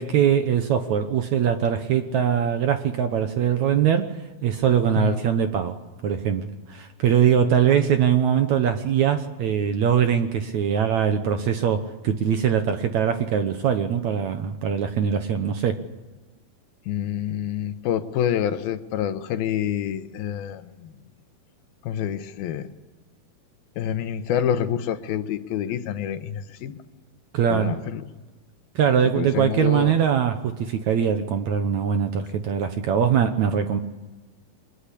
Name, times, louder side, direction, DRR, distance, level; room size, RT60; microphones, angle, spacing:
voice 1, 0.0-15.8 27.3-27.8 28.8-33.8, right 8 dB, 65° right, 8 dB, 2.0 m, -22 dB
voice 2, 16.9-20.9 21.8-22.7 23.8-26.7 27.5-28.0 29.2-29.9, left 9 dB, 80° left, 10 dB, 2.9 m, -27 dB
24.5 x 21.5 x 8.4 m, 1.2 s
omnidirectional pair, 4.3 m